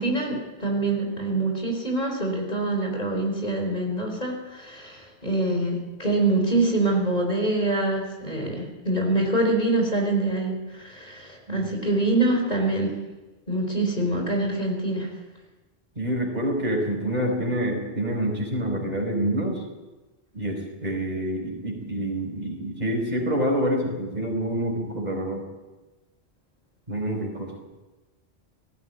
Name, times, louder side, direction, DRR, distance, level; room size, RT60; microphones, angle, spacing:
voice 1, 0.0-12.9 13.5-15.1, right 2 dB, 40° left, 1 dB, 4.3 m, -25 dB
voice 2, 16.0-19.6 20.3-25.4 26.9-27.5, right 1 dB, 40° right, 1 dB, 4.7 m, -27 dB
18.5 x 15.5 x 9.2 m, 1.1 s
omnidirectional pair, 1.1 m